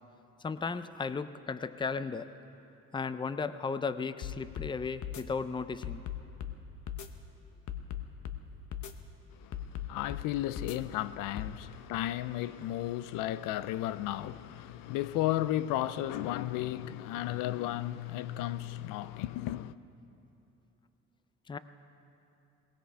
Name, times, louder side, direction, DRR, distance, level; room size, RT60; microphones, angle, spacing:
voice 1, 0.4-2.3 2.9-6.0 21.5-21.6, left 5 dB, 15° left, 0.5 m, -35 dB
sound 1, 4.2-4.7 5.0-5.2 5.8-6.6 6.9-7.1 7.7-8.4 8.7-8.9 9.5-10.3 10.6-10.8 11.4-11.5, left 10 dB, 65° left, 1.0 m, -38 dB
voice 2, 9.3-19.7, left 14 dB, 85° left, 0.5 m, -34 dB
22.0 x 18.5 x 3.4 m
cardioid pair, 95°, 32 cm